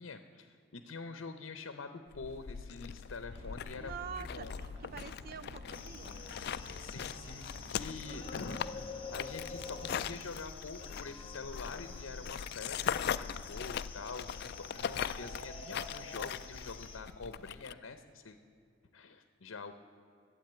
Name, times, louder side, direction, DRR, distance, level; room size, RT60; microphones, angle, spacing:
voice 1, 0.0-4.0 4.3-4.5 6.8-18.4 18.9-19.7, left 4 dB, 75° left, 9 dB, 0.7 m, -45 dB
sound 1, 2.1-17.7, left 8 dB, 55° left, 0.4 m, -41 dB
sound 2, 3.3-10.3, equal, 30° right, 1.2 m, -51 dB
voice 2, 3.8-6.2 6.9-7.0, right 7 dB, 50° right, 16 dB, 0.4 m, -46 dB
sound 3, 5.7-17.0, left 4 dB, 30° left, 1.1 m, -48 dB
12.0 x 8.3 x 8.9 m, 2.5 s
head